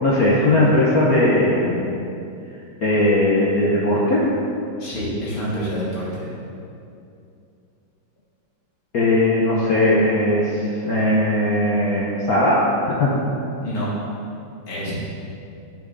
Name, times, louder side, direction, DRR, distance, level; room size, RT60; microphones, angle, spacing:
voice 1, 0.0-1.9 2.8-4.3 8.9-13.1, left 1 dB, 50° left, -6 dB, 1.2 m, -18 dB
voice 2, 4.8-6.3 13.6-13.9 14.7-14.9, equal, 80° left, -8 dB, 3.4 m, -27 dB
10.0 x 6.5 x 3.9 m, 2.6 s
omnidirectional pair, 2.4 m